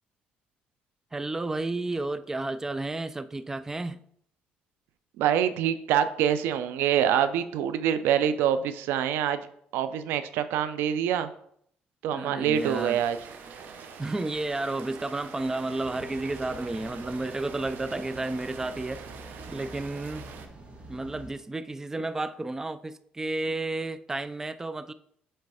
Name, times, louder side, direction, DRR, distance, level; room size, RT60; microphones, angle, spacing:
voice 1, 1.1-4.0 12.1-13.0 14.0-19.0 19.5-20.2 20.9-24.9, right 2 dB, 15° right, 0.3 m, -32 dB
voice 2, 5.2-9.4 9.7-11.3 12.0-13.2, right 9 dB, 85° right, 0.5 m, -25 dB
Rain, 12.5-20.5, right 6 dB, 65° right, 0.9 m, -45 dB
sound 1, 15.8-21.3, right 2 dB, 40° right, 1.7 m, -47 dB
7.7 x 3.2 x 4.8 m
cardioid pair, 100°, 4 cm